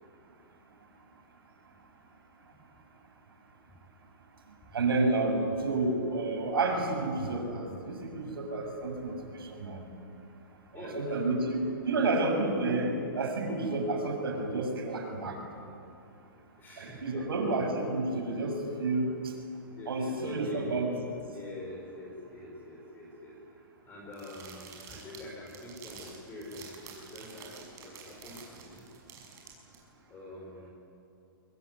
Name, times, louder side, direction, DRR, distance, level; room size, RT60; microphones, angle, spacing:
voice 1, 4.7-9.8 10.7-15.4 16.8-19.3 19.9-20.9, right 2 dB, 85° right, 3 dB, 7.4 m, -30 dB
voice 2, 10.7-11.4 16.6-17.5 19.6-20.8 21.3-27.5 27.8-28.8 30.1-30.7, left 2 dB, 15° left, -2 dB, 5.8 m, -44 dB
sound 1, 24.1-29.8, right 6 dB, 25° right, 6.0 m, -49 dB
23.5 x 23.5 x 9.8 m, 2.6 s
hypercardioid pair, 150°, 12 cm